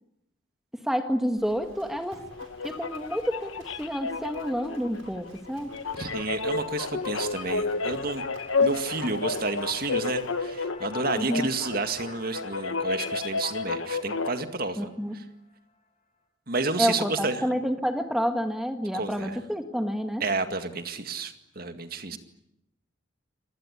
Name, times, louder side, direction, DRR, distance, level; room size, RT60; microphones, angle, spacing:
voice 1, 0.8-2.2 2.6-5.7 11.1-11.5 14.8-15.1 16.8-20.2, equal, ahead, 6 dB, 1.6 m, -29 dB
Livestock farm animals working animals, 1.3-12.1, right 2 dB, 90° right, 7.0 m, -52 dB
sound 1, 2.3-14.4, left 4 dB, 85° left, 1.4 m, -31 dB
sound 2, 5.8-15.9, left 2 dB, 35° left, 5.7 m, -51 dB
voice 2, 6.0-8.2 8.6-14.9 15.1-15.2 16.5-17.4 18.9-19.4 20.2-22.2, right 3 dB, 45° right, 8 dB, 2.1 m, -30 dB
27.0 x 19.5 x 10.0 m, 0.84 s
head